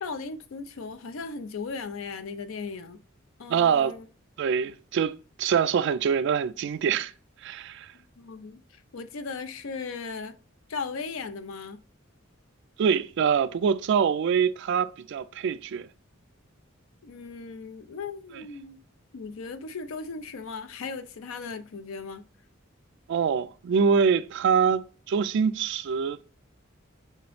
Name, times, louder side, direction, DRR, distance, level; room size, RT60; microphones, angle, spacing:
voice 1, 0.0-3.0 3.4-4.1 7.9-10.4 10.7-11.8 17.0-18.8 19.1-22.2, left 4 dB, 80° left, 0.5 m, -37 dB
voice 2, 3.5-4.0 4.4-7.1 7.4-7.9 12.8-15.9 23.1-26.3, right 6 dB, 60° right, 0.3 m, -25 dB
5.6 x 3.0 x 3.1 m
head